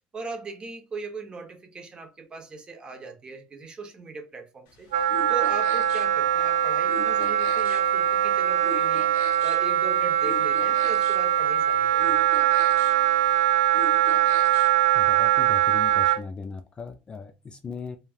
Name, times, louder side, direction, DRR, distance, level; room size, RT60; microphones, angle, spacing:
voice 1, 0.1-9.1 9.4-12.2, right 4 dB, 25° right, 0.9 m, -39 dB
sound 1, 4.7-14.9, left 5 dB, 80° left, 0.8 m, -42 dB
Wind instrument woodwind instrument, 4.9-16.2, right 12 dB, 90° right, 0.5 m, -22 dB
voice 2, 14.9-18.0, left 5 dB, 25° left, 0.4 m, -38 dB
3.1 x 2.3 x 2.4 m
cardioid pair, 120°, 4 cm